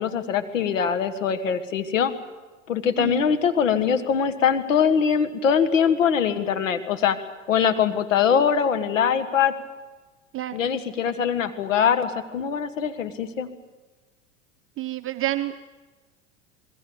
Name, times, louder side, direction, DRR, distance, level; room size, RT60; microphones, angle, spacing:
voice 1, 0.0-2.1 2.7-7.2 7.5-9.5 10.5-13.5, left 7 dB, 85° left, 10 dB, 1.7 m, -22 dB
voice 2, 3.0-3.3 10.3-10.6 14.8-15.6, right 15 dB, 35° right, 7 dB, 0.8 m, -29 dB
26.0 x 20.5 x 7.1 m, 1.2 s
hypercardioid pair, 90°, 38 cm